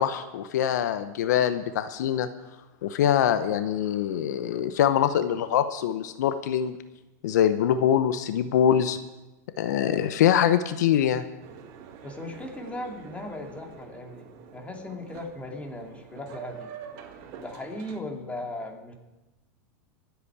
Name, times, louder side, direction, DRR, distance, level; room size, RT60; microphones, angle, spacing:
voice 1, 0.0-2.3 2.8-6.8 7.2-9.0 9.6-11.2, left 9 dB, 85° left, 11 dB, 0.8 m, -24 dB
Boat Water vehicle, 11.4-18.0, right 7 dB, 55° right, 1.7 m, -46 dB
voice 2, 12.0-16.7 17.4-18.9, left 2 dB, 15° left, 2 dB, 2.4 m, -37 dB
25.0 x 8.3 x 4.8 m, 1.0 s
supercardioid pair, 125°, 9 cm